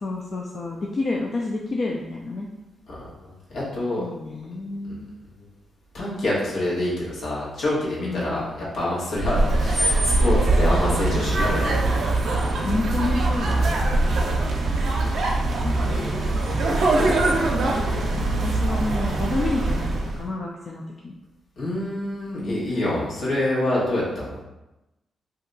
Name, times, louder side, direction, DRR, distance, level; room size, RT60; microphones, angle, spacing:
voice 1, 0.0-2.5 4.0-5.1 8.0-8.5 10.7-12.0 12.6-14.2 15.6-16.3 16.7-17.6 18.0-19.9 20.2-21.1, left 2 dB, 50° left, -1 dB, 0.4 m, -30 dB
voice 2, 2.9-4.1 4.8-4.9 5.9-11.8 21.6-24.4, left 1 dB, 75° left, -6 dB, 1.2 m, -26 dB
sound 1, 9.1-20.2, right 2 dB, 75° right, 0.5 m, -22 dB
2.7 x 2.3 x 3.8 m, 0.97 s
cardioid pair, 70°, 0 cm